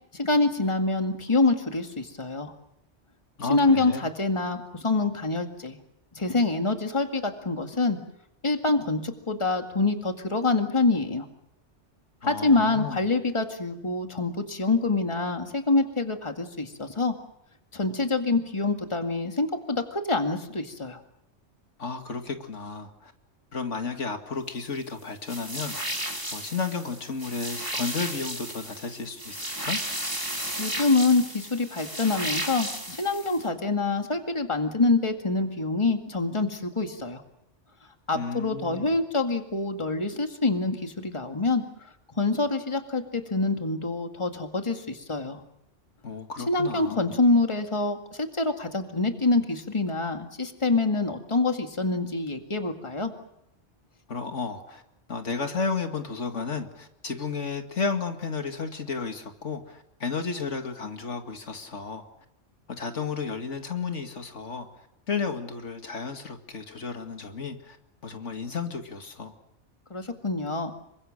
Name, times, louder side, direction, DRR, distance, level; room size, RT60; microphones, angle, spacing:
voice 1, 0.1-2.5 3.5-5.8 6.1-8.0 8.4-11.3 12.2-17.1 17.7-21.0 30.6-37.2 38.1-41.6 42.2-45.4 46.5-53.1 69.9-70.7, left 3 dB, 25° left, 5 dB, 2.1 m, -26 dB
voice 2, 3.4-4.1 12.2-13.0 21.8-23.1 23.5-25.8 26.3-29.8 38.1-39.0 46.0-47.1 54.1-54.8 55.1-62.0 62.7-64.7 65.1-67.8 68.0-69.3, left 5 dB, 80° left, 6 dB, 2.4 m, -33 dB
sound 1, 25.3-33.4, right 1 dB, 15° right, 3.6 m, -34 dB
27.5 x 24.0 x 6.6 m, 0.79 s
omnidirectional pair, 1.2 m